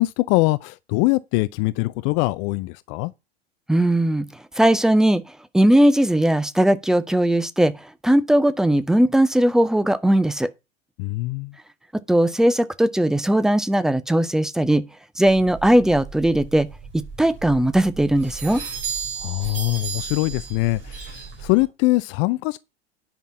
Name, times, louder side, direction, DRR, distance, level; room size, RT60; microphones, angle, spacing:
voice 1, 0.0-3.1 11.0-11.6 19.2-22.6, left 21 dB, 35° left, 0.5 m, -23 dB
voice 2, 3.7-4.3 4.5-5.2 5.5-10.5 12.1-14.8 15.2-16.7 16.9-18.6, right 1 dB, ahead, 0.7 m, -18 dB
sound 1, 15.2-21.6, right 6 dB, 35° right, 4.6 m, -34 dB
10.0 x 5.9 x 5.7 m
figure-of-eight pair, 90°, 32 cm